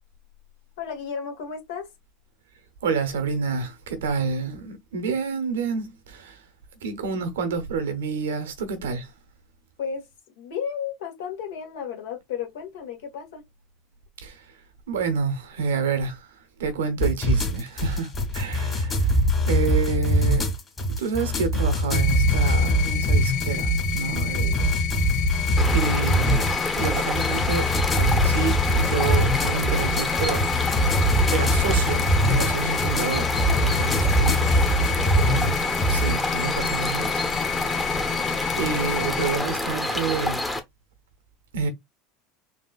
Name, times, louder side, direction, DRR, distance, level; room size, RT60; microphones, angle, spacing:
voice 1, 0.8-1.9 9.8-10.1 10.4-13.4 19.6-19.7 24.4-24.7 34.9-35.4, left 7 dB, 75° left, 1.6 m, -34 dB
voice 2, 2.8-6.4 6.8-9.1 14.2-20.5 21.0-24.6 25.7-26.4 26.8-30.6 31.3-34.7 35.3-37.8 38.6-40.4 41.5-41.7, right 5 dB, 85° right, 0.9 m, -29 dB
sound 1, 17.0-36.1, equal, 30° left, 2.0 m, -23 dB
sound 2, 21.9-39.4, left 10 dB, 55° left, 0.6 m, -30 dB
sound 3, 25.6-40.6, left 1 dB, 10° left, 0.9 m, -28 dB
4.2 x 2.9 x 2.4 m
hypercardioid pair, 90°, 0 cm